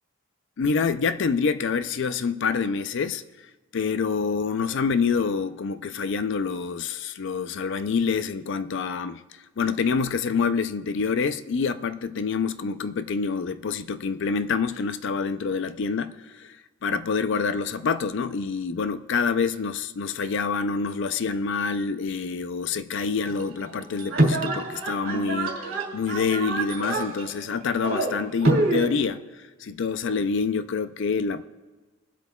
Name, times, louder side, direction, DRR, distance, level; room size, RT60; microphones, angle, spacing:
voice 1, 0.6-3.2 3.7-9.2 9.6-16.6 16.8-25.6 25.9-29.2 29.6-31.4, left 5 dB, 60° left, 0.4 m, -26 dB
sound 1, 23.3-28.9, right 2 dB, 70° right, 2.3 m, -26 dB
22.0 x 7.9 x 2.3 m
head